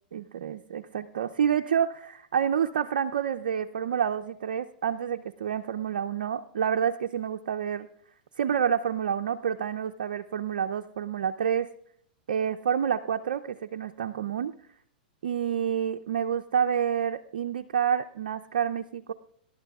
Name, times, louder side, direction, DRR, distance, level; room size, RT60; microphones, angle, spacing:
voice 1, 0.1-7.9 8.4-11.7 12.3-14.7 15.2-19.1, right 8 dB, 75° right, 5 dB, 0.5 m, -28 dB
25.5 x 11.5 x 2.3 m, 0.64 s
hypercardioid pair, 115°, 5 cm